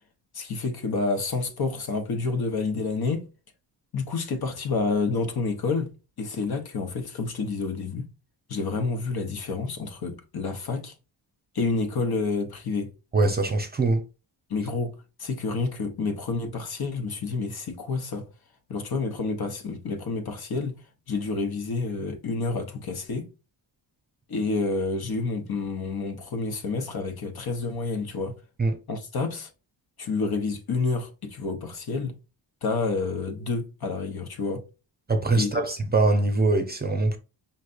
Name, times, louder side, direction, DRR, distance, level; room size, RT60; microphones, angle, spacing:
voice 1, 0.3-3.3 3.9-5.9 6.2-8.1 8.5-10.9 11.5-12.9 14.5-14.9 15.2-18.3 18.7-20.8 21.1-23.3 24.3-28.4 28.9-29.5 30.0-32.1 32.6-34.6 35.4-35.6, left 4 dB, 55° left, 1.0 m, -29 dB
voice 2, 13.1-14.0 28.6-28.8 35.1-37.2, right 2 dB, 20° right, 0.7 m, -23 dB
5.5 x 3.2 x 2.5 m
cardioid pair, 115°, 45 cm